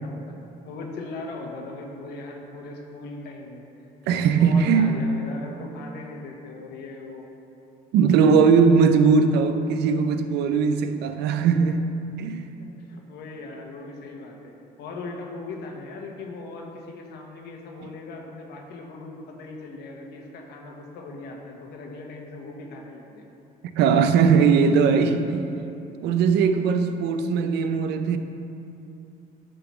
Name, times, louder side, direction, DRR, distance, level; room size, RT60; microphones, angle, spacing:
voice 1, 0.0-3.6 4.1-7.3 12.6-14.5 14.8-23.2 28.0-28.1, left 3 dB, 75° left, 1.2 m, -39 dB
voice 2, 4.1-5.0 7.9-11.9 12.2-12.5 23.6-25.6 26.0-28.2, right 5 dB, 85° right, 0.6 m, -19 dB
10.0 x 3.9 x 5.8 m
cardioid pair, 110°, 17 cm